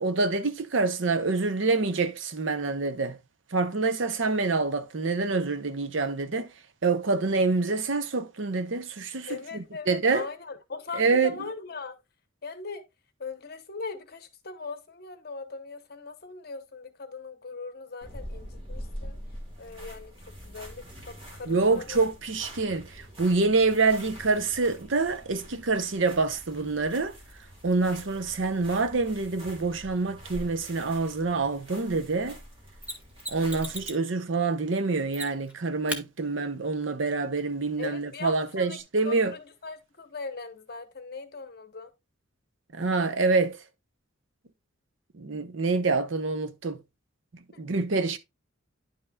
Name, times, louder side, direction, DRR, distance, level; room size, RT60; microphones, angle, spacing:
voice 1, 0.0-3.2 3.5-6.5 6.8-10.3 10.9-11.3 21.5-22.9 23.2-27.2 27.6-32.4 33.3-39.3 42.7-43.6 45.2-46.8 47.6-48.2, right 3 dB, 70° right, 0.8 m, -26 dB
voice 2, 9.3-11.9 12.4-12.8 13.2-19.2 19.6-20.1 20.4-22.1 28.0-28.2 37.8-38.8 39.0-41.9 47.5-47.6, left 4 dB, 50° left, 0.9 m, -40 dB
sound 1, 18.0-33.9, equal, 25° right, 2.4 m, -45 dB
Mechanisms, 32.8-34.1 35.1-35.5 35.9-36.0 38.8-38.9, equal, 5° right, 0.9 m, -36 dB
10.0 x 5.5 x 2.3 m
head